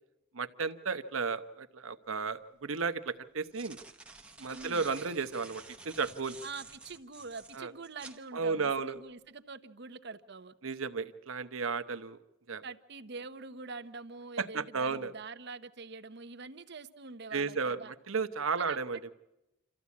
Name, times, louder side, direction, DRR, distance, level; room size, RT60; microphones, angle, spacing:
voice 1, 0.3-3.8 4.4-6.4 7.5-7.7 8.3-8.9 10.6-12.2 12.5-12.6 14.4-15.1 17.3-17.8 18.1-19.1, right 5 dB, 90° right, 9 dB, 1.0 m, -33 dB
sound 1, 3.2-8.2, right 3 dB, 5° right, 1.0 m, -50 dB
voice 2, 4.5-4.9 6.4-10.6 12.6-17.9 18.6-19.1, right 4 dB, 55° right, 11 dB, 0.9 m, -45 dB
27.5 x 14.0 x 8.4 m, 0.95 s
head